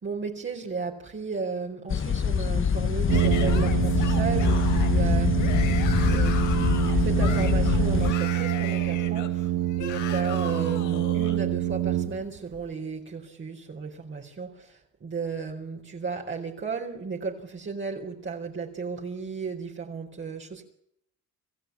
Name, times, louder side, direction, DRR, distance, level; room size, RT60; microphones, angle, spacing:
voice 1, 0.0-5.6 6.1-6.4 6.8-9.4 9.8-20.6, right 4 dB, 40° right, 4.4 m, -34 dB
sound 1, 1.9-8.1, left 7 dB, 45° left, 1.2 m, -24 dB
Yell / Screaming, 3.1-11.4, left 8 dB, 85° left, 3.9 m, -38 dB
Brass instrument, 3.1-12.6, right 14 dB, 75° right, 1.5 m, -26 dB
26.0 x 15.0 x 8.7 m
cardioid pair, 90°, 30 cm